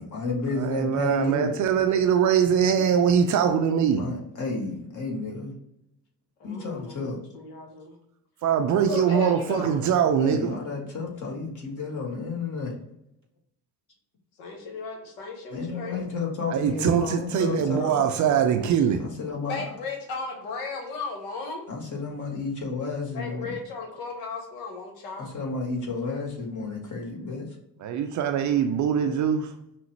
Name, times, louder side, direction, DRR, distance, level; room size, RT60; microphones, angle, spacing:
voice 1, 0.0-1.5 4.0-5.6 6.4-7.2 10.2-12.7 15.5-18.0 19.0-19.6 21.7-23.5 25.2-27.5, left 3 dB, 40° left, 1.4 m, -31 dB
voice 2, 0.6-4.1 8.4-10.6 16.5-19.0 27.8-29.5, right 8 dB, 40° right, 0.4 m, -22 dB
voice 3, 6.4-7.9 8.9-9.8 14.4-16.0 19.5-21.7 23.1-25.3, left 4 dB, 65° left, 1.0 m, -35 dB
5.6 x 2.0 x 3.0 m
figure-of-eight pair, 50°, 48 cm